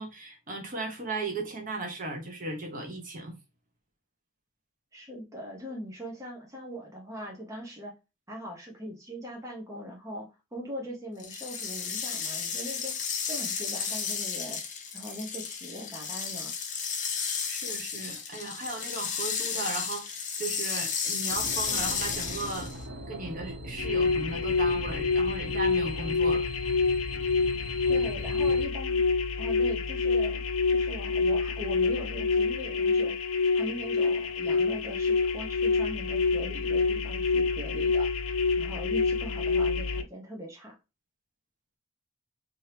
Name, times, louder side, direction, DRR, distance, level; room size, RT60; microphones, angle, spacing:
voice 1, 0.0-3.4 17.5-22.7 23.1-26.5, right 2 dB, 40° right, 1.0 m, -36 dB
voice 2, 4.9-7.9 8.3-12.9 13.3-14.6 14.9-16.5 27.9-29.0 29.4-33.2 33.5-40.8, equal, 15° right, 0.9 m, -41 dB
sound 1, 11.2-22.8, left 6 dB, 40° left, 0.7 m, -33 dB
sound 2, 21.3-28.6, equal, 60° right, 0.7 m, -40 dB
sound 3, 23.8-40.0, left 4 dB, 80° left, 0.6 m, -27 dB
3.5 x 3.0 x 3.3 m
head